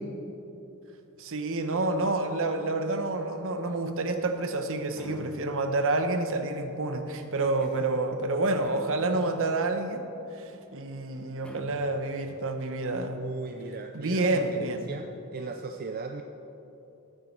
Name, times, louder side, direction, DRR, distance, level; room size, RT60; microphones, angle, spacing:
voice 1, 1.2-10.0 10.3-13.2 13.9-14.9, right 2 dB, 65° right, 7 dB, 1.0 m, -28 dB
sound 1, 4.9-5.8 8.6-9.3 11.4-12.2, equal, 5° left, 0.9 m, -46 dB
voice 2, 13.1-16.2, right 4 dB, 40° right, 5 dB, 0.5 m, -37 dB
14.5 x 9.6 x 4.6 m, 2.9 s
head